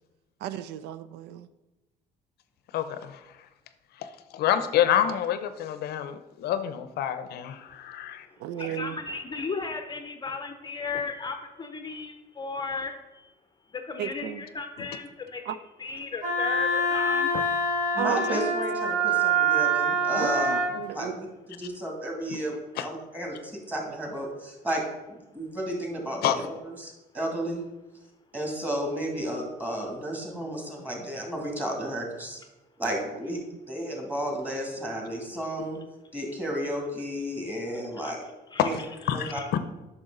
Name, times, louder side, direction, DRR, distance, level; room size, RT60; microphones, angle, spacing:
voice 1, 0.4-1.5 8.4-9.0 14.0-14.4 15.5-15.6 18.0-18.5 20.1-21.2, right 11 dB, 90° right, 14 dB, 0.4 m, -33 dB
voice 2, 2.7-3.2 4.0-8.3 17.3-17.4 22.8-22.9 26.2-26.5 38.6-38.7 39.1-39.6, left 10 dB, 70° left, 11 dB, 0.6 m, -27 dB
voice 3, 7.6-13.3 13.7-17.3 38.0-38.1 38.5-38.6 39.1-39.5, left 4 dB, 25° left, 6 dB, 0.6 m, -36 dB
Wind instrument woodwind instrument, 16.2-20.8, right 2 dB, 50° right, 1.7 m, -25 dB
voice 4, 17.9-24.8 25.1-27.6 28.3-32.4 32.8-33.4 33.7-35.8 36.1-38.2 38.6-38.7 39.1-39.4, right 1 dB, 10° right, -1 dB, 2.4 m, -33 dB
8.8 x 6.1 x 3.8 m, 1.0 s
cardioid pair, 110°, 17 cm